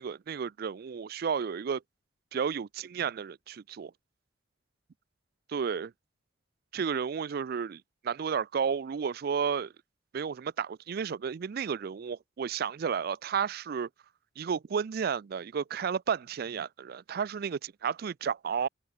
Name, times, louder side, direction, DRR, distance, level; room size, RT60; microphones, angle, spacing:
voice 1, 0.0-1.8 2.3-3.9 5.5-5.9 6.7-9.7 10.1-13.9 14.4-18.7, right 6 dB, 50° right, 0.4 m, -32 dB
head